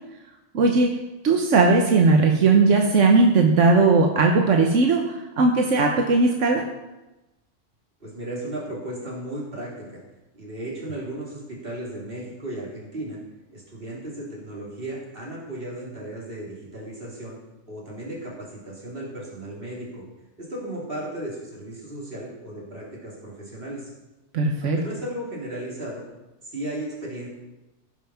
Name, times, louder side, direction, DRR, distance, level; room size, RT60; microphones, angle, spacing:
voice 1, 0.5-0.9 1.2-6.6 24.3-24.8, right 3 dB, 85° right, 2 dB, 1.3 m, -18 dB
voice 2, 8.0-10.0 10.3-13.2 13.5-17.4 17.7-20.0 20.4-23.9 24.6-26.0 26.4-27.3, right 1 dB, 50° right, -4 dB, 3.5 m, -35 dB
16.0 x 5.7 x 5.7 m, 1.0 s
omnidirectional pair, 1.2 m